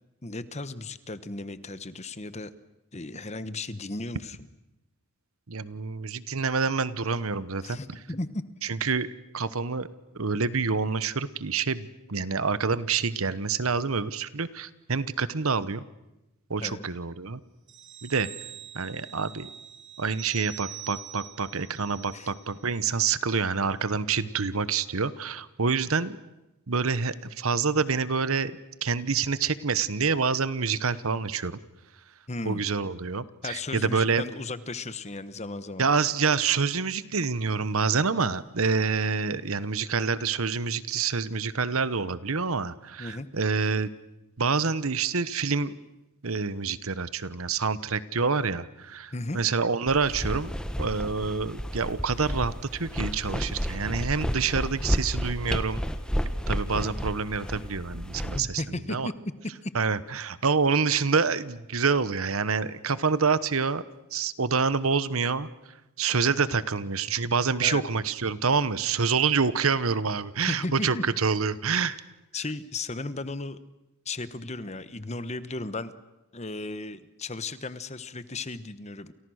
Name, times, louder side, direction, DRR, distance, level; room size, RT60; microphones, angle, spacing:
voice 1, 0.2-2.5 2.9-4.4 7.6-8.4 16.6-16.9 22.1-22.3 32.3-32.7 33.4-35.8 43.0-43.3 49.1-49.4 58.3-59.3 59.6-59.7 67.6-67.8 70.5-71.0 72.3-73.6 74.0-75.9 76.3-79.1, left 2 dB, 30° left, 13 dB, 1.1 m, -35 dB
voice 2, 5.5-8.0 8.7-9.1 9.3-9.9 10.1-15.8 16.5-17.4 18.0-18.3 18.7-19.5 20.0-26.2 26.7-28.5 28.8-31.6 32.4-34.2 35.8-43.9 44.4-45.7 46.2-50.5 50.8-55.8 56.5-58.6 58.9-59.1 59.7-63.8 64.1-65.5 66.0-72.0, right 5 dB, 70° right, 16 dB, 1.1 m, -27 dB
sound 1, 17.7-22.8 23.1-23.3, right 12 dB, 55° right, 1.4 m, -44 dB
sound 2, 49.9-58.4, equal, 5° left, 1.2 m, -31 dB
29.5 x 28.5 x 6.4 m, 0.96 s
head